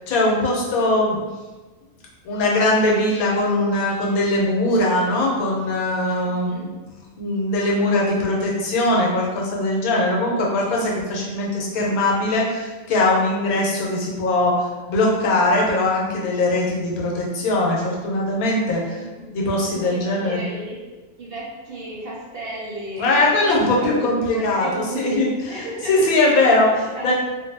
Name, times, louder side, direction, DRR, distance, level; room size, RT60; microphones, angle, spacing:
voice 1, 0.1-1.2 2.2-6.7 7.2-19.0 19.3-20.4 23.0-25.3 25.9-27.1, left 2 dB, 85° left, -3 dB, 1.1 m, -21 dB
voice 2, 6.2-6.7 10.3-10.5 18.9-19.3 19.7-20.8 21.2-23.4 23.8-26.4 26.9-27.1, right 1 dB, 55° right, -7 dB, 0.7 m, -34 dB
2.6 x 2.5 x 2.6 m, 1.2 s
omnidirectional pair, 1.5 m